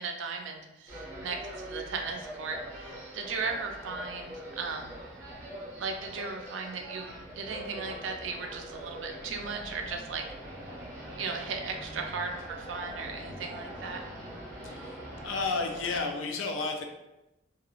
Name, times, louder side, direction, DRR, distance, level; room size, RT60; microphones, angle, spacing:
voice 1, 0.0-4.9 5.8-10.2 11.2-14.0, right 4 dB, 75° right, 3 dB, 0.4 m, -36 dB
sound 1, 0.9-16.1, equal, 15° right, 0.6 m, -43 dB
voice 2, 14.6-15.0 15.2-16.8, left 3 dB, 85° left, 3 dB, 0.4 m, -32 dB
2.9 x 2.3 x 2.4 m, 0.94 s
head